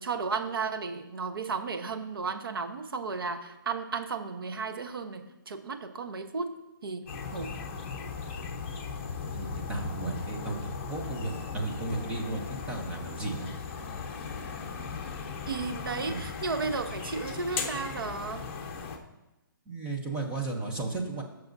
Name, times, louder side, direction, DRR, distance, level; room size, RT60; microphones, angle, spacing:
voice 1, 0.0-6.5 6.8-7.5 15.5-18.5, right 4 dB, 80° right, 8 dB, 1.0 m, -34 dB
sound 1, 7.1-19.0, left 5 dB, 35° left, 0.9 m, -37 dB
voice 2, 9.3-13.5 16.1-16.2 19.7-21.2, right 3 dB, 10° right, 1 dB, 0.7 m, -34 dB
15.5 x 6.0 x 2.6 m, 1.0 s
hypercardioid pair, 170°, 12 cm